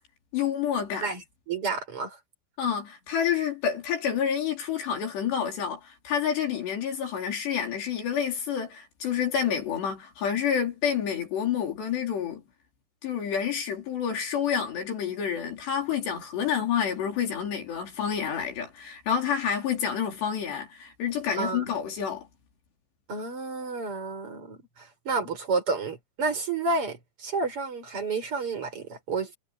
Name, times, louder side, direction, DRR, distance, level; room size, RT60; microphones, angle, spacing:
voice 1, 0.3-1.1 2.6-12.4 13.0-22.3, left 8 dB, 65° left, 5.7 m, -28 dB
voice 2, 1.5-2.2 21.4-21.7 23.1-29.4, right 4 dB, 30° right, 5.5 m, -30 dB
omnidirectional pair, 5.5 m